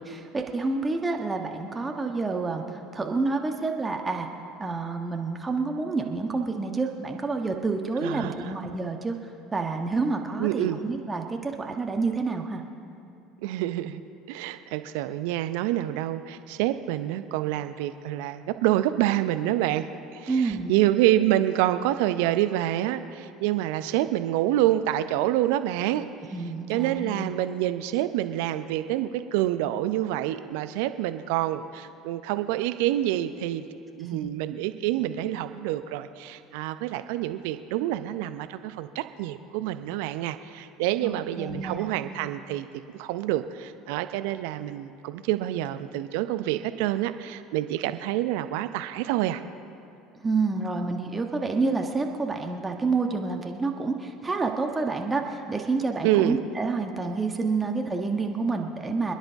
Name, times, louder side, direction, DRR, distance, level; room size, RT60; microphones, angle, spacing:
voice 1, 0.1-4.3 4.6-9.2 9.5-12.6 20.3-20.7 26.3-27.3 34.1-34.3 41.0-41.9 50.2-59.1, right 3 dB, 20° right, 3 dB, 1.3 m, -28 dB
voice 2, 8.0-8.5 10.4-10.8 13.4-14.0 14.3-26.1 26.7-33.7 33.9-42.7 42.9-49.4 56.0-56.4, right 13 dB, 65° right, 10 dB, 0.6 m, -27 dB
26.5 x 10.5 x 3.6 m, 2.6 s
figure-of-eight pair, 65°, 0 cm